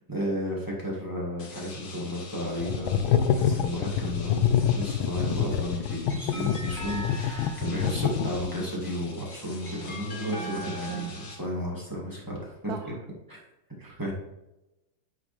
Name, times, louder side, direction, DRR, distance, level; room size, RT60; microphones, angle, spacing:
voice 1, 0.1-12.8 13.3-13.4 13.8-14.1, equal, 10° right, -4 dB, 2.0 m, -33 dB
sound 1, 1.4-11.4, left 3 dB, 65° left, 2.1 m, -46 dB
sound 2, 2.6-8.7, left 9 dB, 90° left, 1.4 m, -26 dB
sound 3, 5.6-8.1 9.0-11.4, equal, 30° left, 1.4 m, -42 dB
voice 2, 10.3-11.1 12.7-12.8, right 9 dB, 70° right, 9 dB, 0.9 m, -36 dB
9.1 x 6.0 x 3.4 m, 0.94 s
omnidirectional pair, 2.1 m